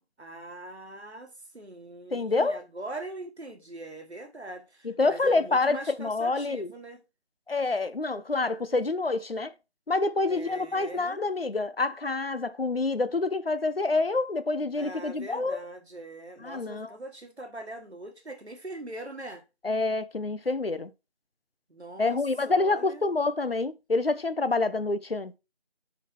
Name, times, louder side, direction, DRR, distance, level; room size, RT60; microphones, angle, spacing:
voice 1, 0.2-7.0 10.3-11.2 14.8-19.4 21.7-22.2 22.5-23.0, right 2 dB, 85° right, 1.5 m, -42 dB
voice 2, 2.1-2.6 4.8-6.7 7.5-9.5 9.9-15.6 16.4-16.9 19.6-20.9 22.0-25.3, left 3 dB, 65° left, 0.7 m, -27 dB
6.6 x 4.9 x 3.2 m
figure-of-eight pair, 175°, 32 cm